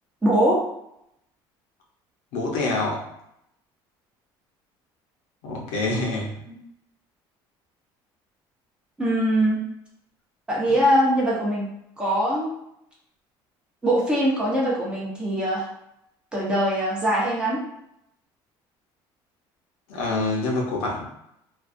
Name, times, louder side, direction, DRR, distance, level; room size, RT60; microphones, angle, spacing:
voice 1, 0.2-0.6 6.5-6.6 9.0-9.6 10.5-11.7 12.0-12.5 13.8-15.7 16.3-17.6, right 1 dB, 10° right, -6 dB, 0.6 m, -22 dB
voice 2, 2.3-3.1 5.4-6.4 19.9-21.0, left 2 dB, 80° left, -2 dB, 0.7 m, -26 dB
2.3 x 2.3 x 2.5 m, 0.78 s
cardioid pair, 170°, 10 cm